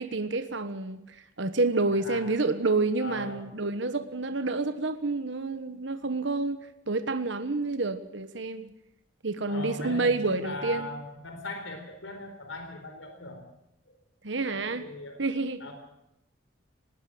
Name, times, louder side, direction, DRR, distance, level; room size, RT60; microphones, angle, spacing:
voice 1, 0.0-8.7 9.2-10.9 14.2-14.9 15.2-15.6, right 3 dB, 70° right, 10 dB, 1.3 m, -29 dB
voice 2, 1.9-2.3 3.0-3.4 9.5-13.4 14.4-15.2 15.6-15.7, left 2 dB, 85° left, 5 dB, 4.0 m, -39 dB
19.5 x 19.0 x 7.8 m, 0.85 s
head